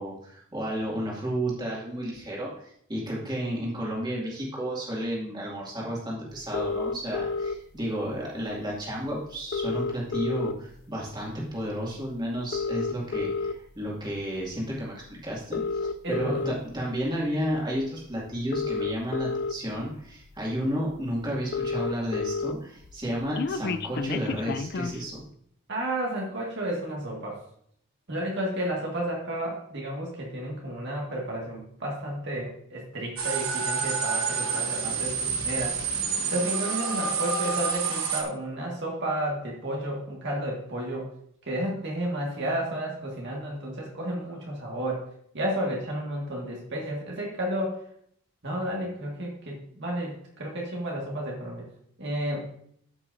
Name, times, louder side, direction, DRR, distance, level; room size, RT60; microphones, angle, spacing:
voice 1, 0.0-25.2, equal, 20° right, -4 dB, 2.3 m, -32 dB
sound 1, 6.5-7.5 8.7-8.8 9.1-9.2 9.4-10.8 11.3-11.5 12.4-13.5 14.2-14.5 15.4-16.5 17.8-17.9 18.3-19.5 20.2-20.3 20.6-20.7 20.9-21.0 21.2-22.5 22.8-25.0, left 4 dB, 50° left, 0.4 m, -30 dB
voice 2, 16.0-16.4 25.7-27.4 28.1-35.8 36.3-41.1 41.4-45.0 45.3-47.8 48.4-51.7 52.0-52.5, right 1 dB, 55° right, -2 dB, 1.9 m, -32 dB
sound 2, 33.2-38.2, right 6 dB, 75° right, 1.2 m, -28 dB
13.0 x 5.9 x 2.6 m, 0.67 s
head